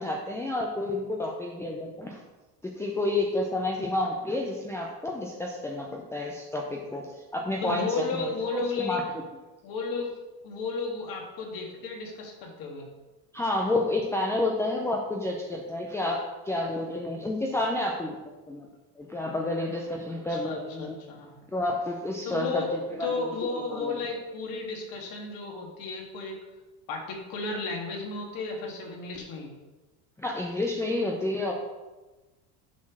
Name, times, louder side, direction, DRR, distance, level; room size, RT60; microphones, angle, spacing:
voice 1, 0.0-2.2 2.6-9.0 13.3-18.1 18.5-18.7 19.0-21.0 21.5-22.6 23.0-23.3 23.7-23.9 30.2-31.5, left 2 dB, 5° left, 0 dB, 0.6 m, -30 dB
voice 2, 7.6-9.0 9.6-10.1 10.4-12.9 20.3-21.4 22.3-26.4 26.9-29.5, left 3 dB, 50° left, 1 dB, 2.0 m, -33 dB
7.4 x 4.4 x 6.1 m, 1.2 s
supercardioid pair, 120°, 45 cm